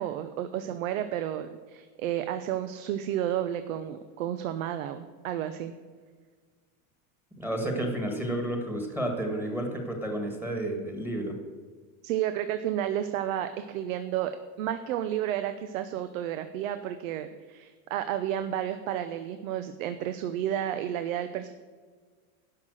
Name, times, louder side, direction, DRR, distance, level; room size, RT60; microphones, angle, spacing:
voice 1, 0.0-5.8 12.0-21.5, right 11 dB, 70° right, 10 dB, 0.9 m, -31 dB
voice 2, 7.4-11.3, right 1 dB, 5° right, 3 dB, 1.6 m, -31 dB
11.5 x 5.8 x 7.8 m, 1.5 s
supercardioid pair, 155°, 42 cm